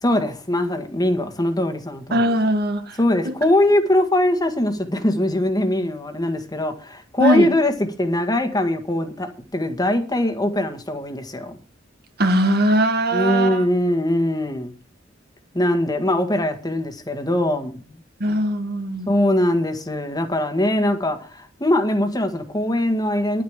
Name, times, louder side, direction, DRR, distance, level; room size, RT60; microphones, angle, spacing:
voice 1, 0.0-2.3 3.0-7.7 8.0-11.6 13.1-14.7 15.5-17.8 19.1-23.4, left 1 dB, 20° left, 1.7 m, -21 dB
voice 2, 2.1-3.0 3.2-3.3 7.2-7.5 12.2-13.6 18.2-19.1, right 1 dB, 55° right, 1.8 m, -20 dB
10.5 x 10.0 x 4.9 m
head